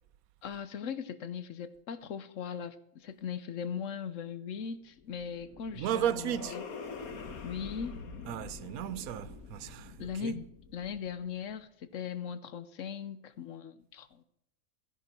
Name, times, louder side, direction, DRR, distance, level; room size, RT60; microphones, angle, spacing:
voice 1, 0.4-6.6 7.4-8.0 10.0-14.2, left 7 dB, 65° left, 1.1 m, -39 dB
sound 1, 4.8-11.3, left 4 dB, 90° left, 1.7 m, -46 dB
voice 2, 5.8-6.6 8.3-10.3, right 10 dB, 85° right, 1.1 m, -34 dB
15.0 x 10.5 x 4.4 m
omnidirectional pair, 1.5 m